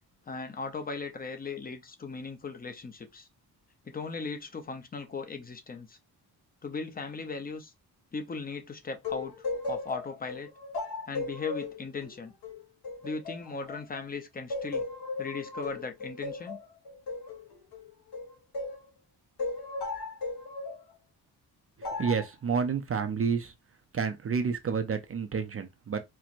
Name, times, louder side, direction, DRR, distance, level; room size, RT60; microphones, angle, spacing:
voice 1, 0.3-3.3 3.9-6.0 6.6-7.7 8.1-10.5 11.1-12.3 13.0-14.8 15.2-16.6, left 4 dB, 25° left, 0.6 m, -38 dB
sound 1, 9.0-14.1 14.5-18.8 19.4-20.8 21.8-22.3, left 3 dB, 70° left, 1.5 m, -36 dB
voice 2, 21.8-23.5 23.9-26.0, right 6 dB, 35° right, 0.5 m, -30 dB
4.4 x 2.1 x 2.5 m
cardioid pair, 105°, 40 cm